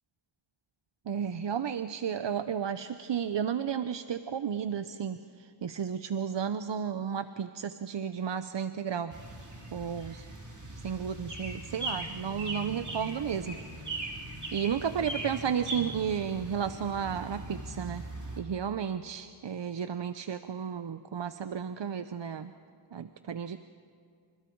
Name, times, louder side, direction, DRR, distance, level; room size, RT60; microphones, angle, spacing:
voice 1, 1.1-9.1 9.7-10.3 10.8-13.6 14.5-18.0 18.4-22.5 22.9-23.6, right 8 dB, 60° right, 11 dB, 0.8 m, -33 dB
sound 1, 9.1-18.4, right 1 dB, 35° right, 4.2 m, -40 dB
28.5 x 27.0 x 4.7 m, 2.3 s
wide cardioid pair, 70°, 50 cm